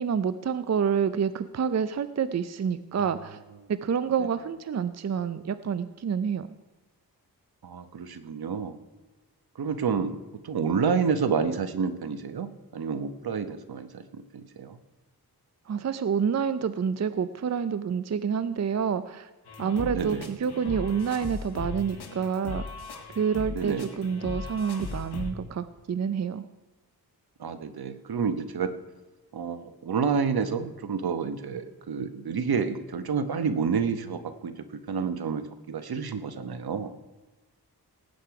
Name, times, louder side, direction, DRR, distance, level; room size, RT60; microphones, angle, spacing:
voice 1, 0.0-3.4 3.7-6.5 15.7-19.3 19.6-22.7 23.2-26.4, right 7 dB, 45° right, 13 dB, 0.5 m, -28 dB
voice 2, 7.6-8.8 9.6-10.2 10.4-14.8 19.8-20.3 23.5-23.9 27.4-28.7 29.3-36.9, right 6 dB, 75° right, 10 dB, 1.1 m, -29 dB
sound 1, 19.4-25.3, left 4 dB, 90° left, 1.8 m, -38 dB
18.0 x 8.8 x 4.8 m, 1.2 s
wide cardioid pair, 100°, 38 cm